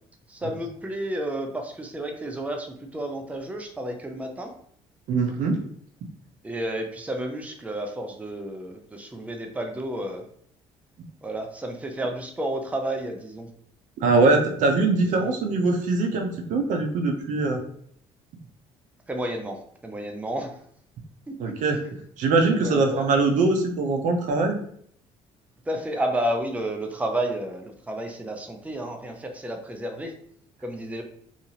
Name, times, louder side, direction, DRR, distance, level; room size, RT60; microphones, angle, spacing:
voice 1, 0.3-4.5 6.4-10.2 11.2-13.5 15.0-15.3 19.1-20.6 21.4-21.8 22.5-23.1 25.7-30.1 30.6-31.0, right 1 dB, 10° right, 3 dB, 0.5 m, -31 dB
voice 2, 5.1-5.6 14.0-17.6 21.4-21.8 22.2-24.6, right 3 dB, 65° right, 4 dB, 0.6 m, -22 dB
2.6 x 2.4 x 2.8 m, 0.65 s
supercardioid pair, 70°, 14 cm